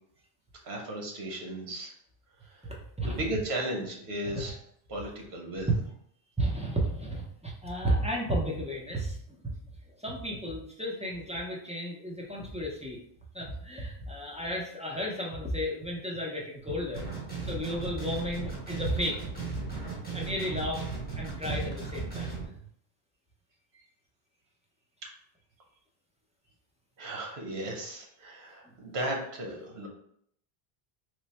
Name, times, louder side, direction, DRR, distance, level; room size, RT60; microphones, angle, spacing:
voice 1, 0.6-1.9 2.4-2.7 3.0-4.5 4.9-5.7 23.7-23.8 25.0-25.1 27.0-29.9, right 1 dB, 80° right, 0 dB, 1.1 m, -35 dB
voice 2, 2.6-3.2 4.4-4.5 6.4-9.5 10.0-13.0 13.3-17.0 17.4-19.2 20.1-20.9 21.2-22.4, equal, 10° right, -4 dB, 0.5 m, -33 dB
sound 1, 16.9-22.5, right 4 dB, 10° left, 0.9 m, -37 dB
3.2 x 2.1 x 4.1 m, 0.67 s
omnidirectional pair, 1.1 m